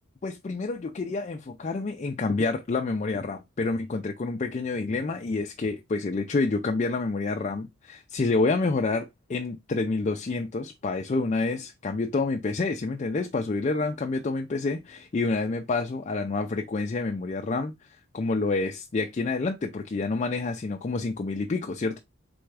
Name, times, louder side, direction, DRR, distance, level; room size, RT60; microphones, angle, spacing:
voice 1, 0.2-22.0, left 3 dB, 30° left, 0.3 m, -28 dB
4.2 x 3.5 x 3.3 m
head